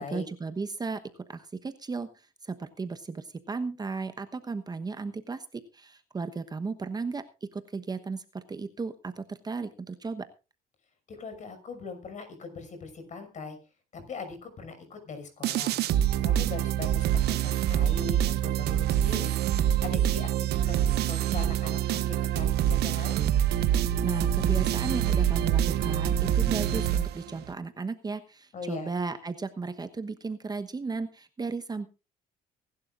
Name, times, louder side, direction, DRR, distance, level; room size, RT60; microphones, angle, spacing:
voice 1, 0.0-7.2 7.5-10.2 24.0-31.9, right 4 dB, 25° right, 9 dB, 1.1 m, -35 dB
voice 2, 11.1-13.6 13.9-15.8 16.2-19.3 19.8-23.2 28.5-28.9, left 4 dB, 45° left, 8 dB, 5.9 m, -40 dB
sound 1, 15.4-27.5, right 11 dB, 75° right, 1.2 m, -26 dB
24.0 x 11.5 x 2.5 m, 0.31 s
cardioid pair, 110°, 17 cm